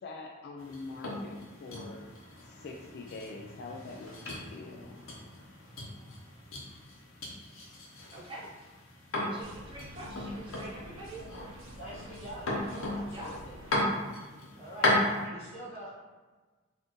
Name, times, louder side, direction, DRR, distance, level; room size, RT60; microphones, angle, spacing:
voice 1, 0.0-2.1 2.4-5.0 7.7-7.8, left 3 dB, 55° left, 1 dB, 0.3 m, -44 dB
sound 1, 0.6-15.2, left 1 dB, 90° left, 0.9 m, -36 dB
voice 2, 8.1-8.5 9.2-11.2 13.1-13.4 15.0-15.3, right 1 dB, 25° right, -6 dB, 0.9 m, -44 dB
sound 2, 9.4-13.8, right 1 dB, 80° right, 0.7 m, -49 dB
voice 3, 11.8-12.5 12.9-13.6 14.5-15.0 15.2-15.9, right 1 dB, 30° left, -8 dB, 1.4 m, -44 dB
4.1 x 2.5 x 3.1 m, 1.3 s
head